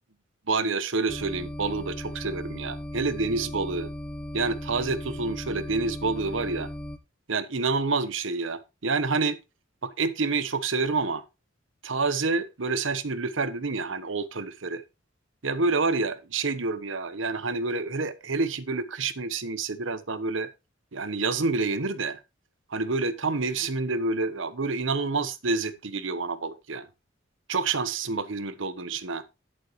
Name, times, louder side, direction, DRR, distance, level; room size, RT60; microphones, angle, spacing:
voice 1, 0.5-3.9 4.3-6.7 7.3-9.4 9.8-11.2 11.8-14.8 15.4-20.5 20.9-22.2 22.7-26.9 27.5-29.2, right 3 dB, 85° right, 1.1 m, -28 dB
sound 1, 1.1-7.0, left 1 dB, 5° left, 0.8 m, -37 dB
11.0 x 7.5 x 3.1 m
head